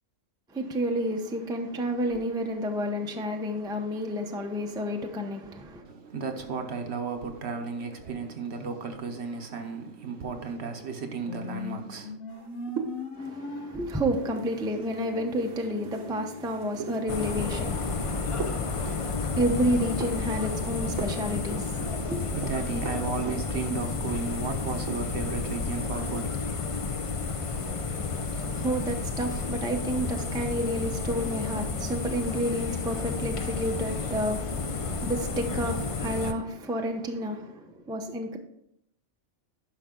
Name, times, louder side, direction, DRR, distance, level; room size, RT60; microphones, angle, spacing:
voice 1, 0.5-5.8 13.2-22.3 28.1-38.4, equal, 5° right, 0.5 m, -30 dB
voice 2, 5.8-12.2 21.8-26.5, right 5 dB, 55° right, 1.1 m, -34 dB
sound 1, 11.3-27.2, left 3 dB, 80° left, 1.4 m, -43 dB
sound 2, 12.3-25.4 25.6-26.3, right 5 dB, 75° right, 1.3 m, -41 dB
sound 3, 17.1-36.3, left 4 dB, 45° left, 0.4 m, -31 dB
10.5 x 5.8 x 3.7 m
omnidirectional pair, 1.4 m